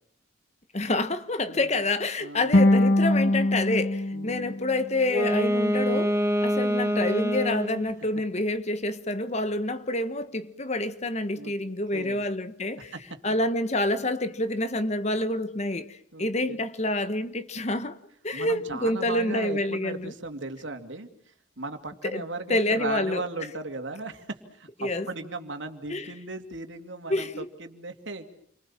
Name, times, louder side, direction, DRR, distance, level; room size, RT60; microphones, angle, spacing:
voice 1, 0.7-6.1 6.4-12.9 13.2-18.0 18.2-20.1 22.0-22.2 22.5-23.2 24.8-25.1 25.9-26.1 27.1-27.5, left 1 dB, 35° left, 1.4 m, -28 dB
voice 2, 1.4-1.9 2.2-2.6 4.1-4.6 11.4-11.5 11.9-12.2 12.9-13.0 16.1-16.6 18.3-21.1 21.6-28.3, right 3 dB, 65° right, 2.8 m, -37 dB
sound 1, 2.5-5.6, left 1 dB, 55° left, 1.9 m, -23 dB
Wind instrument woodwind instrument, 5.0-7.9, equal, 15° right, 1.9 m, -25 dB
30.0 x 25.0 x 7.4 m
head